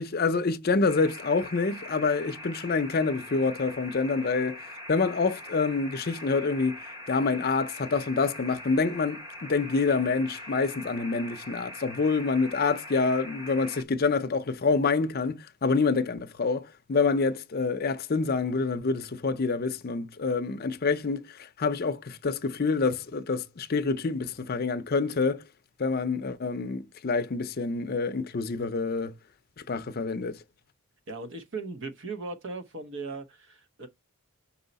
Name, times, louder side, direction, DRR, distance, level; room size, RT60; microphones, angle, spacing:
voice 1, 0.0-4.6 4.9-6.8 7.1-25.4 25.8-29.1 29.7-30.4, left 4 dB, 45° left, 0.5 m, -27 dB
sound 1, 0.9-13.8, left 1 dB, 20° right, 0.8 m, -43 dB
voice 2, 31.1-33.9, right 3 dB, 55° right, 0.9 m, -38 dB
5.4 x 4.3 x 4.0 m
head